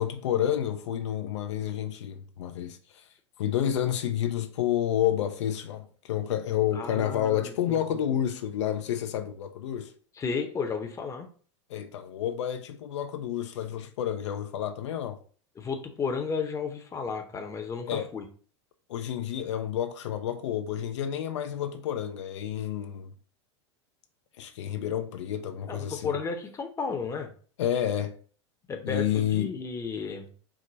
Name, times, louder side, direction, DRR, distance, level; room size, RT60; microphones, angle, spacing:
voice 1, 0.0-9.9 11.7-15.2 17.9-18.1 18.9-23.1 24.4-26.2 27.6-28.2 28.8-29.5, left 10 dB, 70° left, 0.5 m, -30 dB
voice 2, 6.7-8.0 10.2-11.3 15.6-18.2 25.7-27.3 28.7-30.3, left 5 dB, 20° left, 0.8 m, -33 dB
4.8 x 2.1 x 3.9 m
hypercardioid pair, 100°, 15 cm